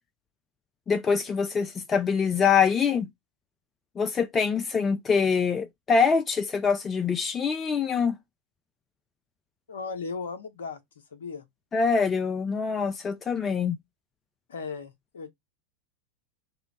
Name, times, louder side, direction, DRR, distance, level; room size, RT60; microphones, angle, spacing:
voice 1, 0.9-3.1 4.0-8.2 11.7-13.8, left 5 dB, 20° left, 0.3 m, -24 dB
voice 2, 9.7-10.8 11.1-11.5 14.5-15.3, left 4 dB, 65° left, 0.6 m, -36 dB
2.8 x 2.1 x 3.7 m
figure-of-eight pair, 90°, 0 cm